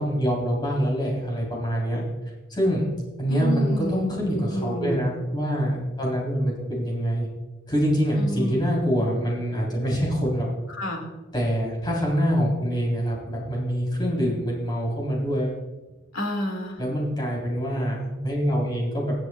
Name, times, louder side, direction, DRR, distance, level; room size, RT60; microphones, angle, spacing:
voice 1, 0.0-2.0 2.5-2.9 3.2-7.3 7.7-10.5 11.3-15.6 16.8-19.1, equal, 20° left, -3 dB, 3.4 m, -25 dB
voice 2, 3.3-5.0 8.2-8.8 10.7-11.1 16.1-16.8, equal, 85° left, 1 dB, 2.2 m, -30 dB
21.5 x 7.7 x 2.3 m, 1.2 s
head